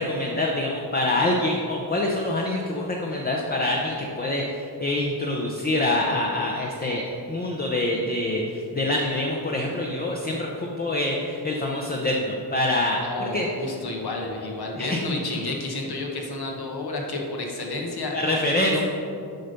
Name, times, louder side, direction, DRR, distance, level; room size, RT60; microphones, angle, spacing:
voice 1, 0.0-13.5 14.8-15.0 18.1-18.8, left 1 dB, 25° left, -1 dB, 0.7 m, -25 dB
voice 2, 13.0-18.8, left 2 dB, 65° left, 1 dB, 1.3 m, -31 dB
7.8 x 5.5 x 5.2 m, 2.7 s
wide cardioid pair, 115°, 40 cm